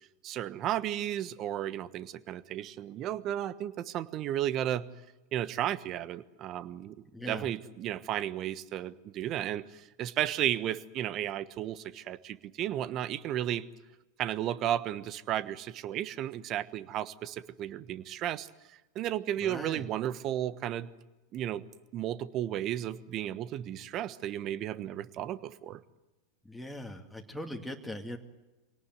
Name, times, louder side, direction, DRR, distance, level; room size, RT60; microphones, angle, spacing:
voice 1, 0.2-4.8 5.3-6.9 7.3-13.6 14.2-18.5 18.9-20.9 21.3-21.6 21.9-25.8, right 11 dB, 45° right, 15 dB, 1.3 m, -33 dB
voice 2, 7.1-7.4 19.4-19.8 26.4-28.2, left 1 dB, ahead, 6 dB, 2.5 m, -40 dB
24.5 x 18.5 x 9.4 m, 1.1 s
hypercardioid pair, 95°, 0 cm